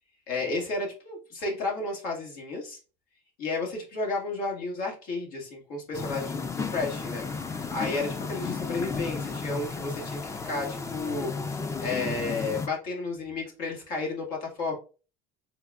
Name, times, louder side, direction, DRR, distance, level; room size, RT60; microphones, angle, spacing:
voice 1, 0.3-2.8 3.4-14.7, left 3 dB, 75° left, -1 dB, 2.0 m, -32 dB
sound 1, 5.9-12.7, left 4 dB, 20° left, 0.5 m, -33 dB
4.6 x 3.8 x 2.4 m, 0.34 s
supercardioid pair, 115°, 15 cm